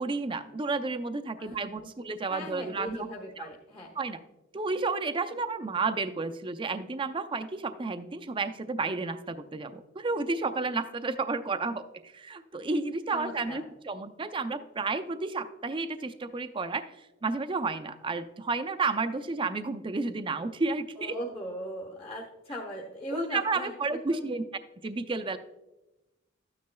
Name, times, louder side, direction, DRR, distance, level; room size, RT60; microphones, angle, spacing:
voice 1, 0.0-3.0 3.4-3.5 4.0-4.2 4.5-16.8 17.2-21.2 23.1-24.4 24.8-25.4, right 3 dB, 25° right, 10 dB, 0.5 m, -31 dB
voice 2, 2.3-3.9 13.1-13.6 21.0-23.7 24.1-24.2, equal, 30° left, -1 dB, 1.1 m, -39 dB
13.0 x 9.3 x 2.3 m, 0.99 s
head